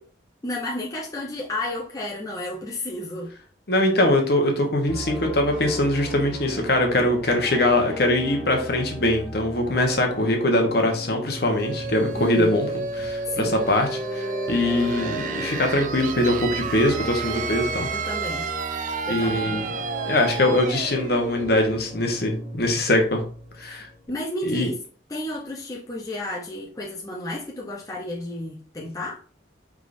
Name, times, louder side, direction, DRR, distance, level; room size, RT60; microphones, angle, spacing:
voice 1, 0.4-3.3 12.2-12.6 13.3-13.6 17.9-18.8 19.1-19.6 23.6-24.8 25.1-29.2, left 1 dB, 20° left, 0.6 m, -32 dB
voice 2, 3.7-17.9 19.1-19.7 20.1-23.2 23.6-23.9 24.4-24.7, left 1 dB, 55° left, 1.0 m, -22 dB
sound 1, 4.9-24.1, equal, ahead, 1.8 m, -36 dB
sound 2, 11.4-22.9, right 5 dB, 40° right, 0.4 m, -32 dB
5.0 x 3.6 x 2.6 m
head